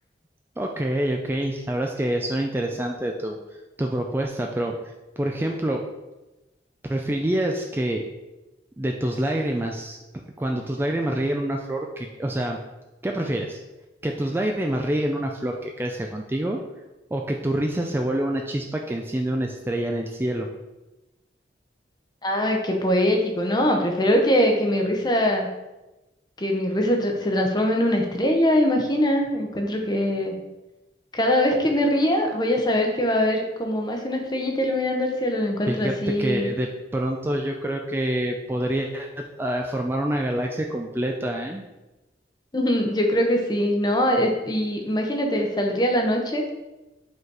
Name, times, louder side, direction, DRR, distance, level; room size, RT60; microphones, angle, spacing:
voice 1, 0.6-3.4 3.8-5.8 6.8-8.0 8.8-10.0 10.4-12.6 13.0-13.6 14.0-16.6 17.1-20.5 35.7-41.6, right 1 dB, 15° right, 2 dB, 0.3 m, -26 dB
voice 2, 22.2-25.5 26.4-30.3 31.1-36.5 42.5-46.4, equal, 25° left, 2 dB, 0.8 m, -22 dB
5.2 x 4.0 x 4.7 m, 1.0 s
head